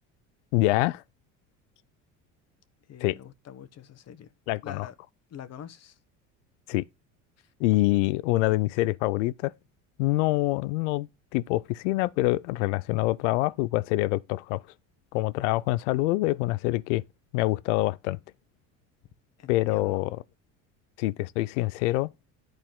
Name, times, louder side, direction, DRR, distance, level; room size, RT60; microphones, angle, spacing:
voice 1, 0.5-1.0 3.0-3.2 4.5-4.9 6.7-6.8 7.6-9.5 10.0-14.6 15.1-17.0 17.3-18.2 19.5-20.2 21.0-22.1, left 19 dB, 85° left, 0.5 m, -25 dB
voice 2, 2.9-4.3 4.6-4.9 5.3-6.0 7.4-7.5 19.4-20.0, left 9 dB, 45° left, 1.1 m, -45 dB
10.5 x 4.3 x 3.6 m
supercardioid pair, 85°, 36 cm